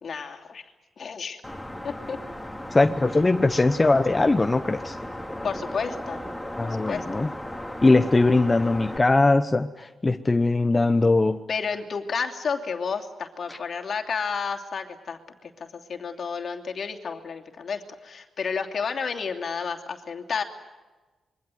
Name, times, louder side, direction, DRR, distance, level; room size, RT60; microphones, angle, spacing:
voice 1, 0.0-0.6 1.0-1.4 1.8-2.2 5.4-6.3 6.6-7.2 11.5-20.4, left 5 dB, 55° left, 3 dB, 2.9 m, -31 dB
sound 1, 1.4-9.0, left 1 dB, 5° left, 2.9 m, -36 dB
voice 2, 2.7-5.0 6.6-7.3 7.8-11.4 13.5-13.6, left 2 dB, 20° left, 7 dB, 0.9 m, -21 dB
26.5 x 23.0 x 7.9 m, 1.2 s
cardioid pair, 110°, 0 cm